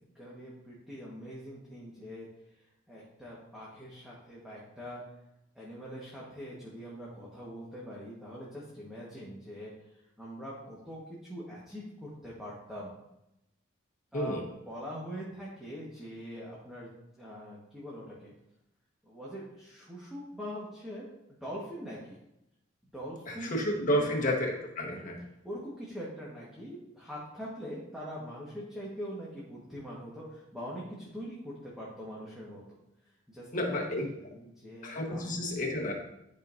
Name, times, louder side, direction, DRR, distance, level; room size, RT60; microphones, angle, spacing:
voice 1, 0.0-2.3 2.9-5.0 5.5-9.7 10.2-12.9 14.1-14.4 14.6-16.9 17.2-18.3 19.0-21.0 21.4-22.2 22.9-24.1 24.9-25.1 25.4-32.6 33.3-35.4, equal, ahead, -7 dB, 1.4 m, -43 dB
voice 2, 23.3-25.2 33.5-34.1 34.8-35.9, equal, 40° left, -1 dB, 1.4 m, -31 dB
11.5 x 5.3 x 2.7 m, 0.87 s
head